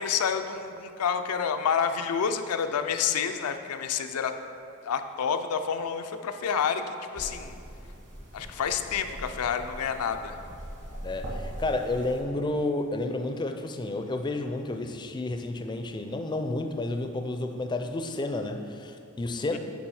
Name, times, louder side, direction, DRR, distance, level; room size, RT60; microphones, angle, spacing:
voice 1, 0.0-4.4 4.8-7.5 8.3-10.4 19.5-19.6, left 7 dB, 85° left, 8 dB, 0.4 m, -29 dB
sound 1, 7.1-12.2, equal, 55° right, 1.6 m, -41 dB
voice 2, 11.0-19.6, left 2 dB, 20° left, 6 dB, 0.4 m, -31 dB
10.0 x 3.4 x 4.8 m, 2.4 s
head